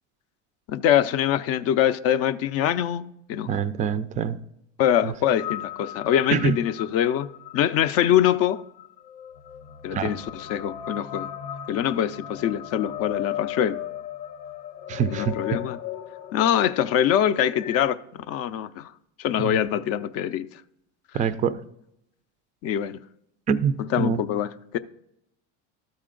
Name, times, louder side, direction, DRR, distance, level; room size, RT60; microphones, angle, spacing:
voice 1, 0.7-3.5 4.8-8.6 9.8-11.3 11.7-13.8 15.0-15.8 16.3-18.9 19.2-20.6 21.1-21.3 22.6-23.0 23.8-24.8, left 10 dB, 45° left, 0.4 m, -24 dB
voice 2, 3.5-4.4 5.0-5.1 6.3-6.5 9.9-10.1 14.9-15.6 19.4-19.6 21.1-21.6 23.5-24.2, right 7 dB, 20° right, 0.3 m, -25 dB
sound 1, 5.3-17.8, left 11 dB, 85° left, 0.7 m, -37 dB
12.5 x 4.2 x 3.7 m
supercardioid pair, 115°, 36 cm